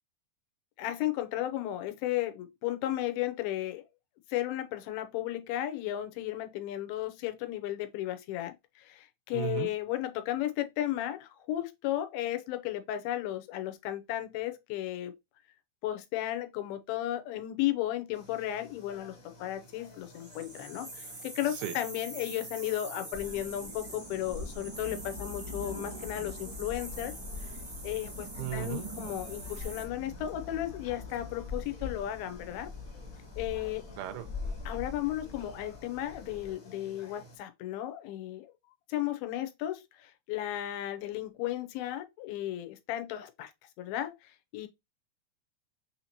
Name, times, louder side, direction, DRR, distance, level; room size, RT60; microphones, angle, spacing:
voice 1, 0.8-3.8 4.3-15.2 15.8-19.2 19.4-27.1 27.8-32.7 33.4-33.9 34.7-38.5 38.9-43.5 43.8-44.7, left 13 dB, 80° left, 2.5 m, -34 dB
voice 2, 9.3-9.7 21.5-21.7 28.4-28.9 34.0-34.3, right 13 dB, 85° right, 2.5 m, -35 dB
sound 1, 18.1-37.4, left 1 dB, 50° left, 1.6 m, -54 dB
sound 2, 20.0-29.8, right 2 dB, 50° right, 0.7 m, -45 dB
sound 3, 23.1-36.5, left 3 dB, 15° right, 0.9 m, -43 dB
6.3 x 2.9 x 2.8 m
omnidirectional pair, 4.4 m